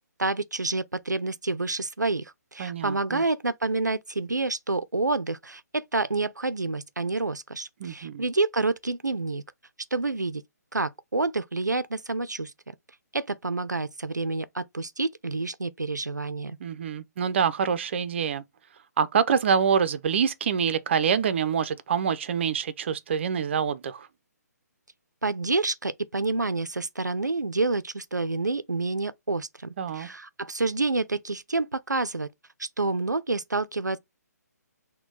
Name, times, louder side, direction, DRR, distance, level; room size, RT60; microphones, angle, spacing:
voice 1, 0.2-9.4 9.9-10.4 10.7-12.5 13.1-16.6 25.2-32.3 32.6-34.0, right 3 dB, 85° right, 0.6 m, -28 dB
voice 2, 2.6-3.2 7.8-8.2 16.6-18.4 19.0-24.1 29.8-30.1, right 7 dB, 40° right, 0.6 m, -26 dB
6.1 x 2.3 x 3.8 m
figure-of-eight pair, 140°, 9 cm